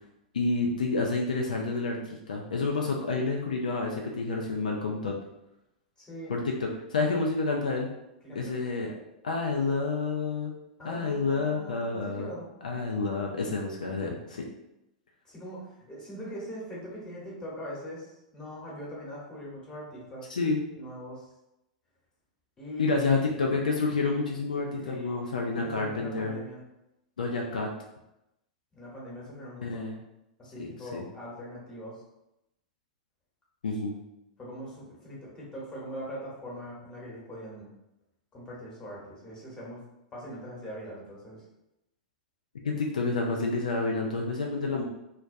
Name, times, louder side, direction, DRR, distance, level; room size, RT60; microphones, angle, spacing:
voice 1, 0.3-5.2 6.3-7.9 8.3-8.9 9.2-10.5 10.8-12.3 12.6-14.5 20.3-20.6 22.8-26.4 27.2-27.7 29.6-30.0 30.6-31.0 33.6-33.9 42.6-44.9, left 3 dB, 75° left, 0 dB, 0.4 m, -29 dB
voice 2, 6.0-6.3 8.2-8.6 10.8-12.5 15.2-20.3 20.8-21.3 22.6-23.5 24.8-25.2 25.6-26.6 28.7-29.9 30.4-32.0 34.4-37.7 38.3-39.8 40.1-41.4, equal, 15° left, -6 dB, 1.1 m, -41 dB
2.3 x 2.1 x 2.5 m, 0.89 s
figure-of-eight pair, 100°, 4 cm